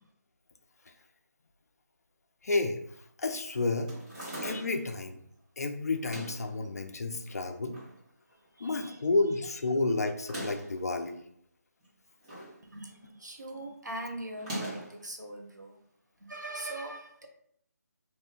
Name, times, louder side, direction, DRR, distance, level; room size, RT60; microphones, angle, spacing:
voice 1, 2.4-2.8 3.2-3.9 4.4-5.2 5.6-7.8 8.6-11.2, left 3 dB, 60° left, 6 dB, 0.4 m, -30 dB
sound 1, 3.9-4.9 5.9-6.5 7.3-7.9 8.3-8.4 8.6-8.7 10.1-10.8 11.8-12.6 12.9-13.2 14.3-15.0, right 1 dB, 20° right, 1.0 m, -40 dB
voice 2, 8.6-9.0 12.7-15.7 16.3-17.3, right 1 dB, 80° right, 2 dB, 0.7 m, -41 dB
2.5 x 2.1 x 3.5 m, 0.69 s
figure-of-eight pair, 155°, 9 cm